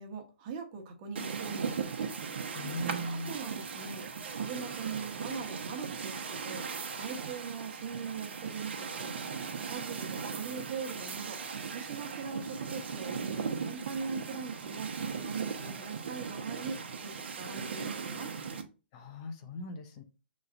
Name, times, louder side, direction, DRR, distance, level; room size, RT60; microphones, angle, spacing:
voice 1, 0.0-1.9 3.1-4.0 4.3-6.7 6.9-9.2 9.7-11.4 11.7-14.9 15.2-18.3, right 5 dB, 35° right, 1.1 m, -41 dB
sound 1, 1.2-18.6, right 6 dB, 75° right, 0.9 m, -38 dB
voice 2, 2.5-3.3 18.9-20.0, equal, 35° left, 0.8 m, -39 dB
5.5 x 3.1 x 2.5 m
hypercardioid pair, 145°, 6 cm